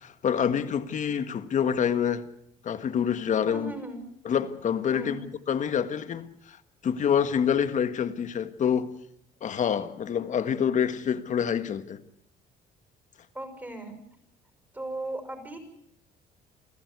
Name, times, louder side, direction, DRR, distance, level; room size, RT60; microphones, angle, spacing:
voice 1, 0.0-2.2 2.6-3.8 4.2-6.3 6.8-8.9 9.4-12.0, left 8 dB, 45° left, 1.7 m, -27 dB
voice 2, 3.5-4.0 4.9-5.3 13.3-14.0 14.7-15.6, right 2 dB, 10° right, 5.9 m, -37 dB
28.5 x 14.5 x 8.2 m
cardioid pair, 110°, 17 cm